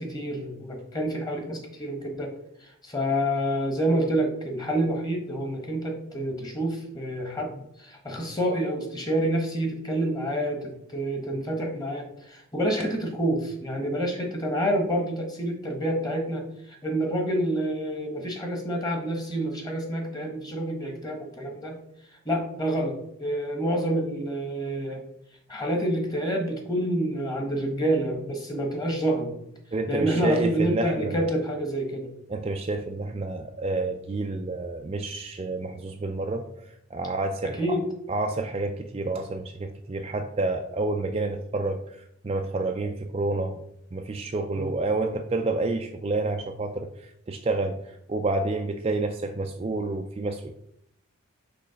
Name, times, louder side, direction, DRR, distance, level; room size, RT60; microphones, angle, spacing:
voice 1, 0.0-2.3 2.6-21.8 22.2-25.0 25.5-29.4 29.9-32.1 37.6-37.8 44.5-44.7, right 1 dB, 20° left, 2 dB, 1.2 m, -28 dB
voice 2, 29.7-31.3 32.3-37.8 38.1-43.6 43.9-50.5, right 2 dB, 25° right, 4 dB, 0.3 m, -29 dB
6.2 x 3.2 x 5.7 m, 0.75 s
head